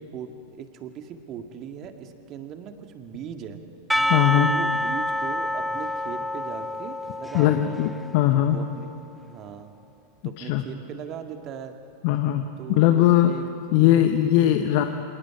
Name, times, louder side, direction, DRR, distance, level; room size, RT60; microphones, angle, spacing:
voice 1, 0.0-3.6 3.9-7.8 8.3-8.9 9.2-9.7 10.2-11.8 12.6-14.1 14.8-14.9, right 8 dB, 35° right, 6 dB, 2.0 m, -39 dB
Percussion / Church bell, 3.9-8.9, equal, ahead, 0.5 m, -28 dB
voice 2, 4.1-4.5 7.3-8.6 10.4-10.6 12.0-13.3 13.7-14.8, left 12 dB, 45° left, 7 dB, 1.1 m, -20 dB
28.5 x 26.5 x 4.9 m, 2.4 s
figure-of-eight pair, 90°, 0 cm